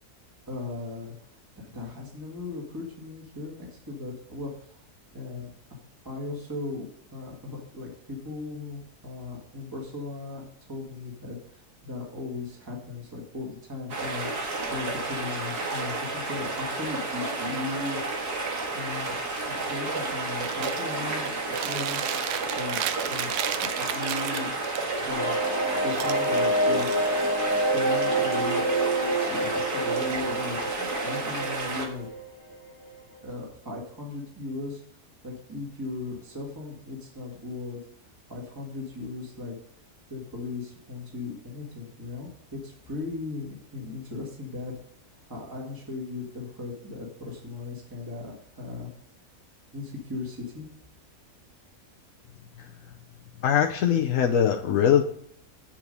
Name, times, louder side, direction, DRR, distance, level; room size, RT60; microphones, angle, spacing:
voice 1, 0.5-4.9 5.1-5.8 6.0-10.4 10.7-18.0 18.7-19.2 19.5-22.0 22.6-24.5 25.0-25.4 25.8-27.1 27.5-28.6 29.3-32.1 33.2-39.6 40.1-42.3 42.6-44.7 45.1-48.9 49.7-50.7, left 3 dB, 15° right, -2 dB, 1.8 m, -37 dB
sound 1, 13.9-32.1, right 3 dB, 85° right, 2.4 m, -31 dB
Chewing mastication, 20.4-20.8 21.3-24.8 25.9-27.4, right 11 dB, 70° right, 0.7 m, -33 dB
sound 2, 25.1-32.6 32.8-32.9 33.2-33.3, right 1 dB, 15° left, 1.9 m, -27 dB
voice 2, 53.4-55.0, left 9 dB, 65° left, 4 dB, 1.0 m, -22 dB
8.0 x 7.5 x 5.3 m, 0.66 s
omnidirectional pair, 1.6 m